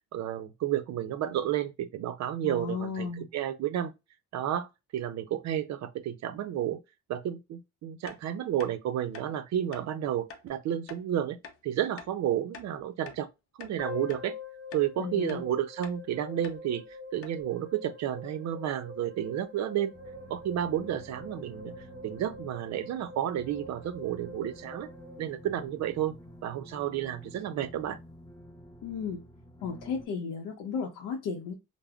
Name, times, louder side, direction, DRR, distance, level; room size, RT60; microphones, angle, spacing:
voice 1, 0.1-3.9 4.3-6.8 7.1-11.4 11.6-13.3 13.6-14.3 14.7-16.8 17.1-19.9 20.3-21.7 22.0-24.9 25.2-26.1 26.4-28.0, right 11 dB, 65° right, 0.5 m, -31 dB
voice 2, 2.4-3.3 15.0-15.4 28.8-29.2 29.6-31.5, left 5 dB, 85° left, 0.6 m, -34 dB
sound 1, 8.1-8.2 8.6-8.7 9.1-9.3 9.7-9.9 10.3-10.5 10.9-11.0 11.4-11.6 12.0-12.1 12.5-13.3 13.6-13.8 14.1-14.3 14.7-14.9 15.3-15.4 15.8-16.0 16.4-16.6 16.9-17.0 17.2-17.4, left 5 dB, 50° left, 0.6 m, -46 dB
sound 2, 13.8-26.0, left 2 dB, 15° right, 1.1 m, -45 dB
sound 3, 19.9-30.1, equal, 15° left, 1.2 m, -50 dB
3.4 x 2.0 x 2.3 m
cardioid pair, 90°, 30 cm